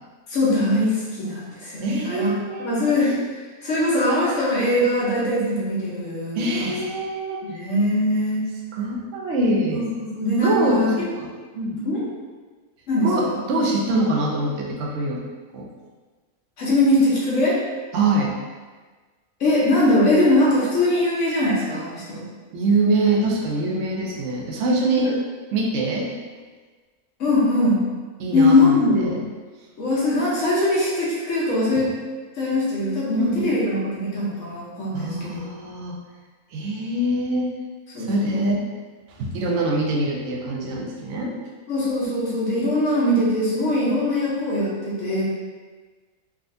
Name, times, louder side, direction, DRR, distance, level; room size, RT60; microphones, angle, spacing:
voice 1, 0.3-6.7 7.4-8.4 9.7-10.9 11.8-12.0 12.9-13.4 16.6-17.6 19.4-22.3 27.2-27.8 28.3-29.1 29.8-31.9 32.4-35.5 37.9-38.5 41.7-45.2, left 1 dB, 60° left, -7 dB, 1.0 m, -21 dB
voice 2, 1.8-2.9 6.4-7.4 8.7-9.8 10.4-10.9 11.2-11.3 11.5-11.8 13.0-15.2 15.5-15.7 17.9-18.3 22.5-25.1 25.5-26.1 28.2-28.8 29.0-29.2 33.2-33.5 34.9-36.0 36.5-37.5 38.1-38.6 39.2-41.3, right 2 dB, 65° right, -1 dB, 0.8 m, -24 dB
3.6 x 2.4 x 2.5 m, 1.4 s
omnidirectional pair, 1.6 m